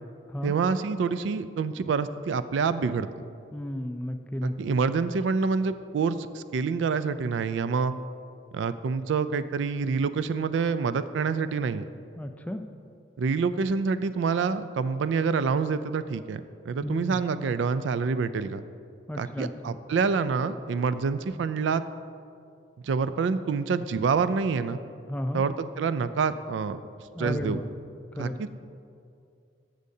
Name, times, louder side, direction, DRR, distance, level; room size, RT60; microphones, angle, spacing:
voice 1, 0.4-3.1 4.4-7.9 8.5-11.8 13.2-16.4 16.7-18.6 19.2-21.8 22.8-24.8 25.3-26.8 27.2-27.6 28.2-28.3, right 5 dB, 85° right, 13 dB, 0.3 m, -27 dB
voice 2, 3.5-4.8 12.2-12.6 16.8-17.2 19.1-19.8 25.1-25.4 27.2-27.7 28.2-28.4, left 1 dB, 10° left, 6 dB, 0.3 m, -33 dB
14.5 x 6.4 x 2.7 m, 2.4 s
head